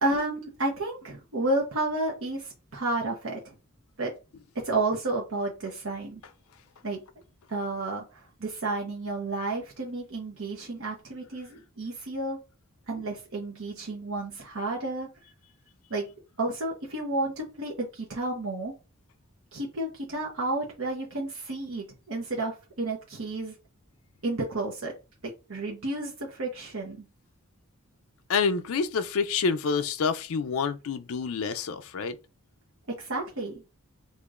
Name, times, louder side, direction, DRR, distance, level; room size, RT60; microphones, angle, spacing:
voice 1, 0.0-3.5 4.0-4.1 4.6-6.2 6.8-7.0 7.5-12.4 12.9-15.1 15.9-16.1 16.4-18.7 19.5-23.5 24.2-24.9 25.5-27.0 33.0-33.6, right 2 dB, 65° right, 0.9 m, -31 dB
voice 2, 28.3-32.2, left 5 dB, 70° left, 0.4 m, -27 dB
6.2 x 2.9 x 2.4 m
head